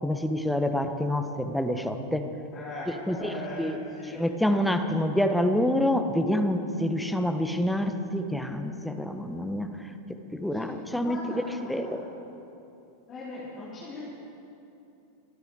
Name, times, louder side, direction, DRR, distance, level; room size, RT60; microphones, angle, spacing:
voice 1, 0.0-2.3 3.1-3.8 4.1-9.7 10.3-12.0, left 1 dB, ahead, 6 dB, 1.1 m, -27 dB
voice 2, 2.5-4.2 10.5-12.0 13.1-14.0, left 2 dB, 25° left, -9 dB, 4.0 m, -40 dB
25.0 x 10.5 x 4.9 m, 2.8 s
figure-of-eight pair, 90°, 0 cm